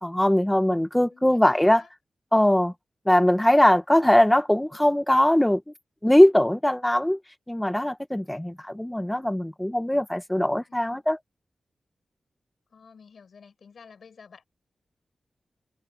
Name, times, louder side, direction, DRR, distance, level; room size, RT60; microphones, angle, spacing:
voice 1, 0.0-1.8 2.3-2.7 3.0-5.7 6.0-7.2 7.5-11.2, left 1 dB, 10° left, 1.3 m, -21 dB
voice 2, 1.1-1.9 10.7-11.1 12.7-14.4, left 5 dB, 75° left, 7.8 m, -51 dB
wide cardioid pair, 80°, 0 cm